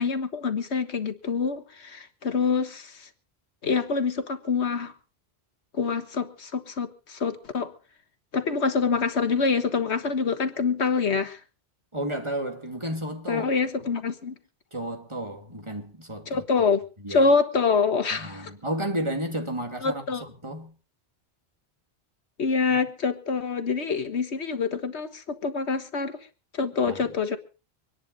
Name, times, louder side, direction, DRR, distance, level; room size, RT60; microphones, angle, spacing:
voice 1, 0.0-3.1 3.6-4.9 5.7-7.7 8.3-11.4 13.3-14.3 16.3-16.8 17.1-18.5 19.8-20.2 22.4-26.2 26.5-27.4, left 5 dB, 85° left, 1.7 m, -26 dB
voice 2, 11.9-13.5 13.8-13.9 14.7-16.4 17.0-17.3 18.1-20.7 26.9-27.1, right 1 dB, 25° right, 2.4 m, -32 dB
25.5 x 10.5 x 4.0 m
omnidirectional pair, 1.1 m